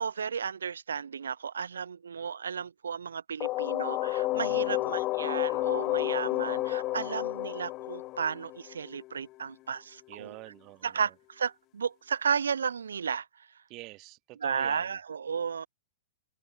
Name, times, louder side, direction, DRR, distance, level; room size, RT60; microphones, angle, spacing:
voice 1, 0.0-10.4 10.8-13.3 14.4-15.7, right 6 dB, 85° right, 3.1 m, -33 dB
sound 1, 3.4-9.1, left 18 dB, 35° left, 0.5 m, -30 dB
voice 2, 4.5-5.1 10.1-11.1 13.7-15.0, right 22 dB, 40° right, 2.6 m, -46 dB
hypercardioid pair, 120°, 0 cm